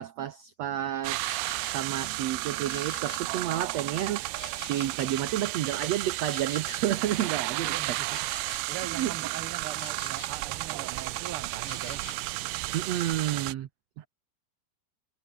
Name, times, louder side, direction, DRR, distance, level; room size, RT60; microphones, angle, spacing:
voice 1, 0.0-4.3 4.6-8.0 8.9-9.1 12.7-13.7, right 12 dB, 65° right, 1.7 m, -31 dB
Insect, 0.9-1.8 2.3-5.3 5.6-10.5 10.8-12.3, left 7 dB, 45° left, 1.3 m, -50 dB
sound 1, 1.0-13.5, right 20 dB, 85° right, 2.6 m, -33 dB
voice 2, 7.5-8.1 8.7-12.0 14.0-14.1, right 11 dB, 50° right, 1.8 m, -41 dB
omnidirectional pair, 4.4 m